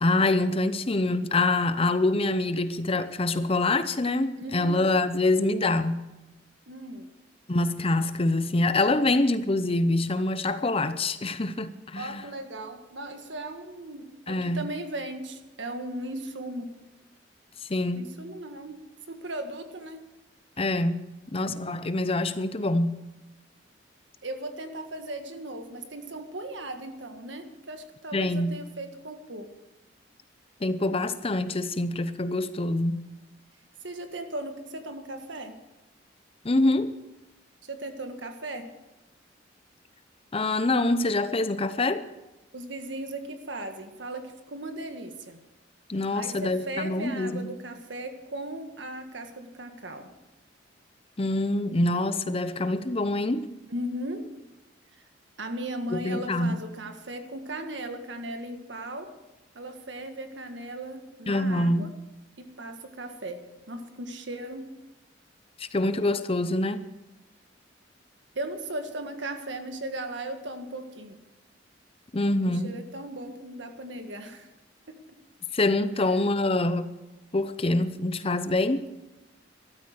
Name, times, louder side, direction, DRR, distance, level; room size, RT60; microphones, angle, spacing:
voice 1, 0.0-6.1 7.5-12.3 14.3-14.6 17.7-18.1 20.6-21.0 21.3-23.0 28.1-28.6 30.6-33.0 36.4-36.9 40.3-42.0 45.9-47.4 51.2-53.5 55.9-56.6 61.3-61.9 65.6-66.8 72.1-72.7 75.5-76.9 77.3-78.9, left 2 dB, 30° left, 12 dB, 0.7 m, -25 dB
voice 2, 4.4-4.8 6.7-7.1 12.0-16.7 18.0-18.8 19.1-20.0 24.2-29.5 33.8-35.6 37.6-38.7 42.5-45.4 46.1-50.1 53.7-54.3 55.4-59.1 59.5-61.9 62.4-63.4 63.7-64.7 68.4-71.2 72.4-74.5 74.9-75.0, right 1 dB, 70° right, 6 dB, 1.7 m, -37 dB
13.5 x 13.0 x 6.5 m, 1.0 s
head